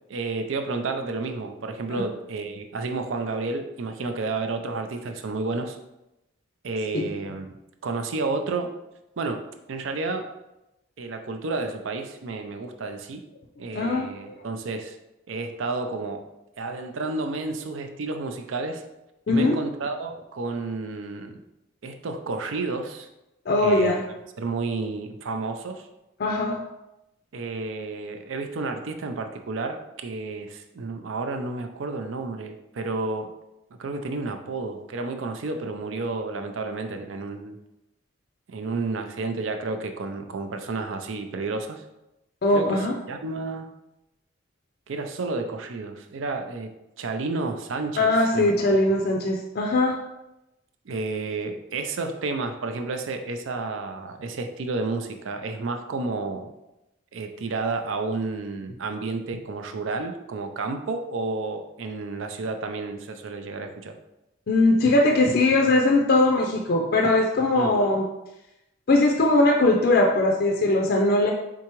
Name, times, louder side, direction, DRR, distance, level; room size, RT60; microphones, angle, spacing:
voice 1, 0.1-5.8 6.6-7.6 7.8-8.7 9.2-9.4 9.7-10.3 11.0-13.2 13.6-15.0 15.3-16.2 16.6-18.8 19.3-21.4 21.8-23.1 23.6-24.0 24.4-25.9 27.3-33.3 33.8-37.6 38.5-41.8 42.5-43.7 44.9-46.7 47.0-48.5 50.9-56.5 57.1-64.0 67.5-67.8, right 3 dB, 85° right, 6 dB, 0.5 m, -31 dB
voice 2, 13.7-14.1 19.3-19.6 23.5-24.0 26.2-26.6 42.4-42.9 48.0-50.0 64.5-68.1 68.9-71.3, left 2 dB, 55° left, 1 dB, 0.4 m, -20 dB
4.5 x 3.7 x 3.0 m, 0.93 s
head